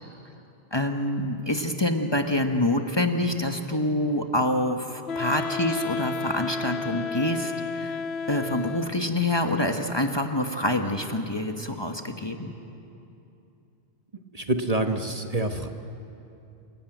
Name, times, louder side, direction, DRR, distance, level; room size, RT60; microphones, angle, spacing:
voice 1, 0.7-8.0 8.3-12.5, left 1 dB, 25° left, 4 dB, 1.2 m, -26 dB
Wind instrument woodwind instrument, 5.1-9.2, left 5 dB, 80° left, 1.0 m, -32 dB
voice 2, 14.3-15.7, right 2 dB, 35° right, 5 dB, 1.2 m, -26 dB
27.5 x 17.0 x 9.1 m, 2.7 s
omnidirectional pair, 1.1 m